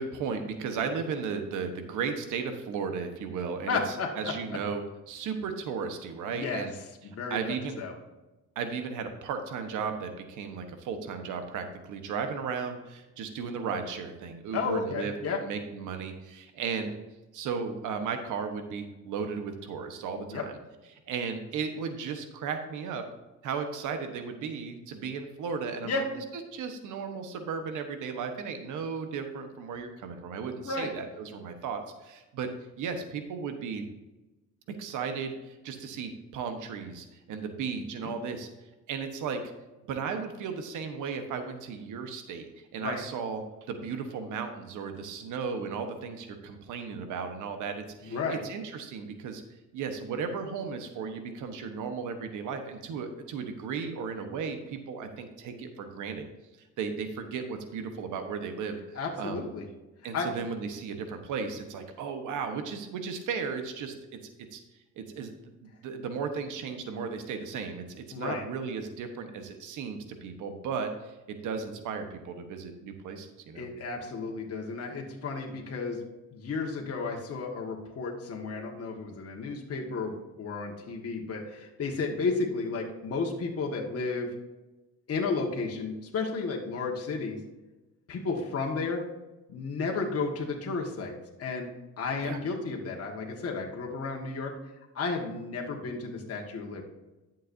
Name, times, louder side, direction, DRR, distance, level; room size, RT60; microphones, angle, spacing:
voice 1, 0.0-6.7 7.3-7.8 8.5-15.1 15.4-17.0 17.3-20.5 20.9-23.0 23.4-26.0 26.5-32.5 32.8-33.8 34.7-38.5 38.9-39.4 39.9-42.5 42.7-49.4 49.7-56.3 56.8-59.5 60.0-63.9 64.5-64.6 65.0-73.7 92.2-92.4, right 5 dB, 90° right, 7 dB, 1.2 m, -35 dB
voice 2, 3.7-4.3 6.3-6.7 7.0-7.9 14.5-15.4 20.3-20.4 25.8-26.1 30.6-30.9 37.8-38.1 42.8-43.0 48.0-48.4 58.9-59.7 60.1-60.3 68.1-68.4 73.5-76.0 76.3-84.3 85.1-87.4 88.1-89.0 89.5-91.7 92.0-94.5 94.9-96.8, left 4 dB, 50° left, 0 dB, 1.7 m, -33 dB
11.5 x 7.4 x 2.7 m, 1.1 s
cardioid pair, 90°, 30 cm